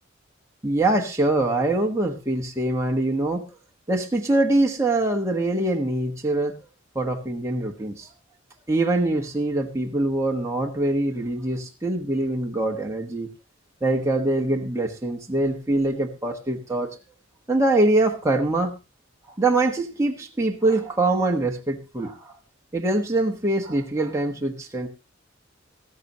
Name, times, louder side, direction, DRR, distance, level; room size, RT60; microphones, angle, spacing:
voice 1, 0.6-3.5 3.9-6.6 6.9-8.1 8.7-13.3 13.8-16.9 17.5-18.8 19.4-22.3 22.7-24.9, right 2 dB, 15° right, 0 dB, 1.3 m, -23 dB
14.5 x 14.0 x 2.9 m, 0.27 s
head